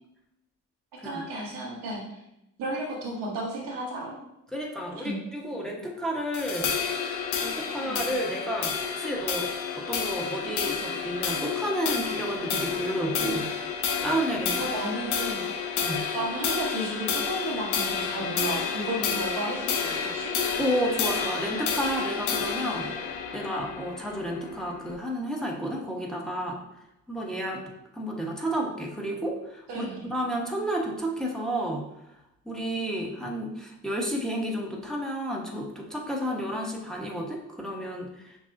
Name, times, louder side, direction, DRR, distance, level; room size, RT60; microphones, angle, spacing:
voice 1, 1.0-2.0 2.6-4.2 5.0-5.2 7.8-8.0 14.6-15.8 16.1-20.3 29.7-30.1, right 1 dB, 80° right, -3 dB, 1.2 m, -33 dB
voice 2, 4.5-7.2 7.4-9.5 9.8-13.5 14.0-14.7 15.8-16.0 20.6-26.6 27.1-27.6 27.9-31.9 32.5-38.4, equal, ahead, -1 dB, 1.1 m, -31 dB
sound 1, 6.3-24.9, left 6 dB, 85° left, 0.6 m, -30 dB
6.4 x 2.4 x 2.6 m, 0.85 s
supercardioid pair, 45°, 39 cm